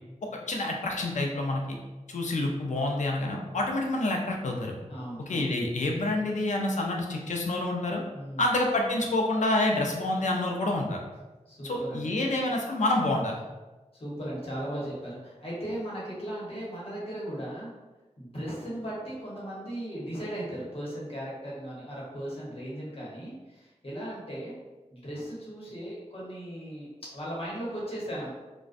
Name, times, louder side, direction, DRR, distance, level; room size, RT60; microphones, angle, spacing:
voice 1, 0.2-1.8 2.1-4.7 5.3-8.0 8.4-11.0 11.6-13.3, left 2 dB, 80° left, 1 dB, 0.4 m, -28 dB
voice 2, 4.9-5.5 8.1-8.5 11.5-12.1 13.9-17.7 18.2-24.6 24.9-28.3, right 1 dB, 50° left, -6 dB, 0.9 m, -37 dB
2.4 x 2.1 x 2.4 m, 1.2 s
wide cardioid pair, 80°, 12 cm